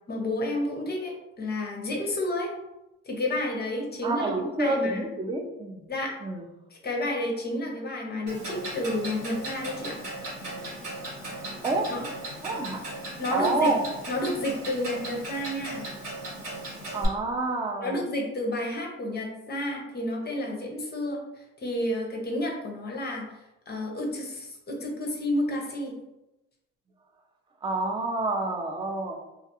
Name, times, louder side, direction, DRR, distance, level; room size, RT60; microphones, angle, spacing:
voice 1, 0.1-2.5 3.1-4.3 4.6-5.0 5.9-6.2 6.8-10.0 11.9-12.1 13.2-13.7 14.1-15.9 17.8-23.4 23.7-25.9, left 1 dB, 35° left, 0 dB, 0.6 m, -30 dB
voice 2, 4.0-5.8 6.2-6.4 11.6-11.9 12.4-12.8 13.3-13.8 16.9-18.0 27.6-29.2, right 2 dB, 15° right, 3 dB, 0.4 m, -28 dB
Clock, 8.3-17.1, right 1 dB, 70° right, 1.3 m, -37 dB
2.3 x 2.3 x 2.8 m, 0.94 s
cardioid pair, 90°, 30 cm